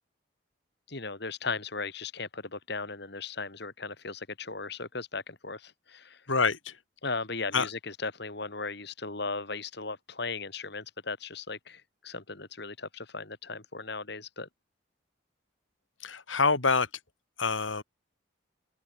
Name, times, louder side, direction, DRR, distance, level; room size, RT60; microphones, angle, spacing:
voice 1, 0.9-6.2 7.0-14.5, left 4 dB, 60° left, 3.3 m, -37 dB
voice 2, 6.3-6.7 7.5-7.7 16.0-16.9 17.4-17.8, left 4 dB, 85° left, 3.2 m, -26 dB
open air
head